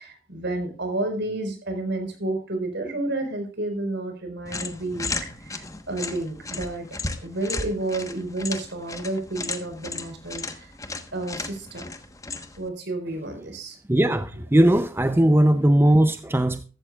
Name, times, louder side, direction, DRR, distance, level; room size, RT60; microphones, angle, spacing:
voice 1, 0.0-6.9 7.2-10.7 11.1-11.9 12.6-13.8, right 2 dB, 60° right, 4.6 m, -30 dB
sound 1, 4.5-12.7, left 3 dB, 15° left, 1.2 m, -35 dB
voice 2, 13.9-16.6, right 1 dB, 10° right, 0.5 m, -19 dB
14.5 x 13.5 x 2.4 m
head